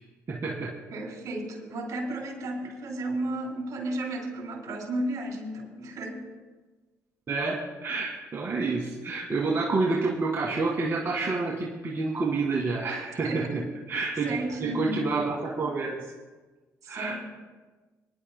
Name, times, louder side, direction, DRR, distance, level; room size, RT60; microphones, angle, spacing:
voice 1, 0.3-0.7 7.3-14.3 14.6-16.0 16.9-17.1, right 3 dB, 45° right, -4 dB, 1.8 m, -28 dB
voice 2, 0.9-6.3 13.2-13.6 14.2-15.0 16.8-17.1, right 1 dB, 65° right, 0 dB, 3.3 m, -33 dB
25.5 x 10.5 x 2.2 m, 1.3 s
cardioid pair, 75°, 6 cm